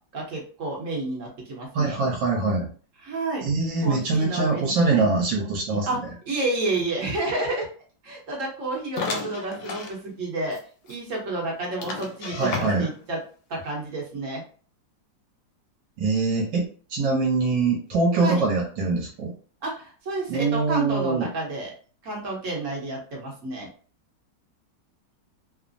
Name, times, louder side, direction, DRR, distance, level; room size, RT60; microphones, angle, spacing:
voice 1, 0.1-2.0 3.0-3.4 3.8-4.8 5.9-6.0 6.3-7.7 8.0-10.6 10.9-13.2 13.5-14.4 17.0-17.2 18.2-18.5 19.6-21.7 22.0-23.7, right 2 dB, 50° right, -1 dB, 1.1 m, -30 dB
voice 2, 1.7-2.7 3.4-5.9 12.3-12.9 16.0-19.3 20.3-21.3, right 3 dB, 75° right, -2 dB, 1.3 m, -23 dB
sound 1, 9.0-10.0 10.5-10.6 10.9-11.0 11.8-13.1, left 4 dB, 85° left, 1.3 m, -33 dB
3.2 x 2.0 x 2.5 m, 0.41 s
omnidirectional pair, 2.0 m